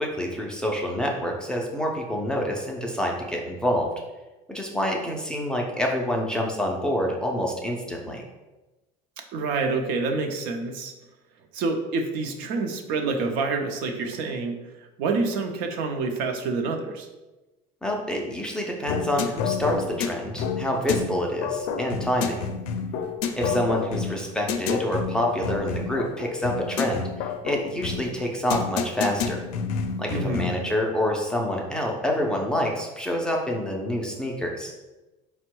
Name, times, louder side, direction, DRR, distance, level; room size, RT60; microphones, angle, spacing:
voice 1, 0.0-3.9 4.5-8.2 17.8-22.4 23.3-29.4 30.0-34.7, equal, 5° left, -1 dB, 0.3 m, -27 dB
voice 2, 9.3-10.9 11.5-14.6 15.0-17.1 30.1-30.5, right 3 dB, 70° right, 4 dB, 0.6 m, -27 dB
sound 1, 18.9-30.7, left 6 dB, 80° left, 0.4 m, -29 dB
4.4 x 2.1 x 4.4 m, 1.1 s
cardioid pair, 165°, 15 cm